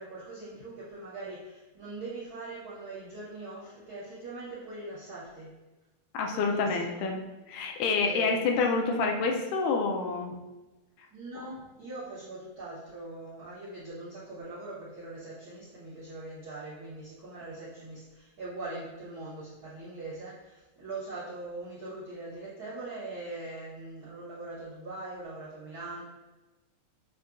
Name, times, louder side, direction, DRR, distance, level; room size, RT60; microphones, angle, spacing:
voice 1, 0.0-5.5 6.3-7.0 8.0-8.4 11.1-26.0, right 2 dB, 70° right, -11 dB, 1.2 m, -41 dB
voice 2, 6.1-7.2 7.5-10.4, left 4 dB, 80° left, 2 dB, 2.0 m, -28 dB
7.1 x 2.4 x 2.3 m, 1.1 s
omnidirectional pair, 3.6 m